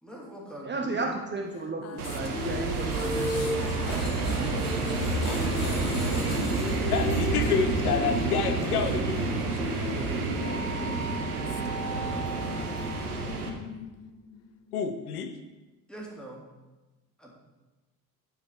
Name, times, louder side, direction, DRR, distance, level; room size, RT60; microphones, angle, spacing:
voice 1, 0.0-1.1 15.9-16.4 17.2-17.3, right 1 dB, ahead, -3 dB, 2.7 m, -44 dB
voice 2, 0.6-3.6 3.9-4.1, right 3 dB, 25° right, 1 dB, 1.0 m, -34 dB
sound 1, 1.5-15.2, left 7 dB, 35° left, 0.6 m, -40 dB
sound 2, 1.9-13.4, left 1 dB, 50° left, 2.9 m, -37 dB
sound 3, 2.0-13.5, right 4 dB, 80° right, 1.0 m, -29 dB
voice 3, 6.9-9.4 14.7-15.4, left 6 dB, 75° left, 8 dB, 0.7 m, -28 dB
10.5 x 4.9 x 4.8 m, 1.1 s
figure-of-eight pair, 55°, 45 cm